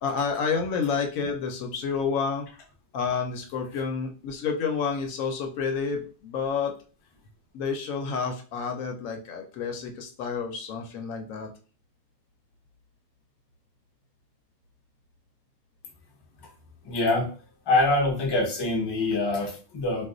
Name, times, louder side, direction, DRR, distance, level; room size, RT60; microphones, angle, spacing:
voice 1, 0.0-2.5 2.9-6.7 7.5-11.5, left 5 dB, 75° left, 3 dB, 1.0 m, -29 dB
voice 2, 16.8-17.3 17.7-20.1, left 2 dB, 30° left, 0 dB, 0.5 m, -24 dB
2.4 x 2.3 x 3.7 m, 0.38 s
omnidirectional pair, 1.5 m